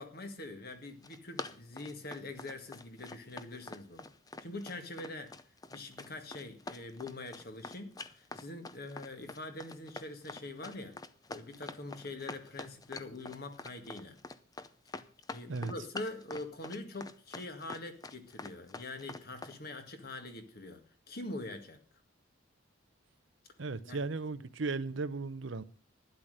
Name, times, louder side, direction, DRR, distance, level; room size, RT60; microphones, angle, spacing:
voice 1, 0.0-4.1 4.4-5.3 5.7-11.0 11.3-14.2 15.3-20.8 21.1-21.8 23.8-24.0, left 2 dB, 50° left, 1.9 m, -44 dB
Run, 0.8-19.6, left 3 dB, 20° left, 0.6 m, -45 dB
voice 2, 23.6-25.6, right 3 dB, 65° right, 0.7 m, -36 dB
12.0 x 10.5 x 6.6 m
head